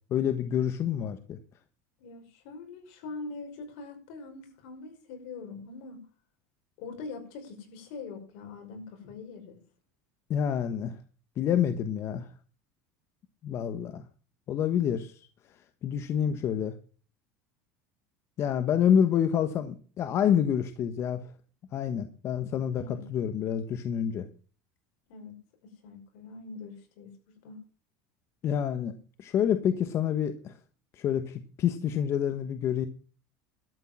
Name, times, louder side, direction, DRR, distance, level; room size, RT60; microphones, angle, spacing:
voice 1, 0.1-1.4 10.3-10.9 11.4-12.3 13.4-14.0 14.5-15.1 15.8-16.7 18.4-21.2 21.7-24.3 28.4-30.5 31.0-32.9, left 9 dB, 40° left, 1.1 m, -27 dB
voice 2, 2.0-6.0 6.8-9.6 22.7-23.0 25.1-25.4 25.6-27.6, left 4 dB, 70° left, 5.4 m, -43 dB
12.5 x 8.2 x 7.4 m
supercardioid pair, 140°, 7 cm